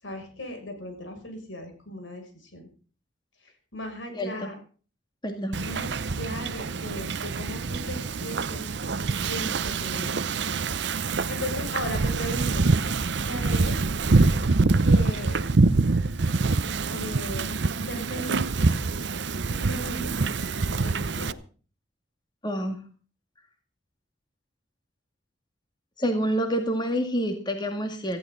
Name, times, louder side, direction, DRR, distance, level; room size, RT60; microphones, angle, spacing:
voice 1, 0.0-2.6 3.4-4.5 5.6-8.7 9.3-10.6 11.1-12.5 13.3-13.8 14.8-15.4 16.9-17.5 17.9-18.5 19.5-20.2 20.7-21.4, equal, 85° left, 4 dB, 6.7 m, -37 dB
voice 2, 4.1-4.5 5.2-5.6 22.4-22.8 26.0-28.2, equal, 25° left, 5 dB, 2.1 m, -27 dB
Wind / Ocean, 5.5-21.3, right 3 dB, 65° right, 0.7 m, -25 dB
18.5 x 15.0 x 4.0 m, 0.39 s
head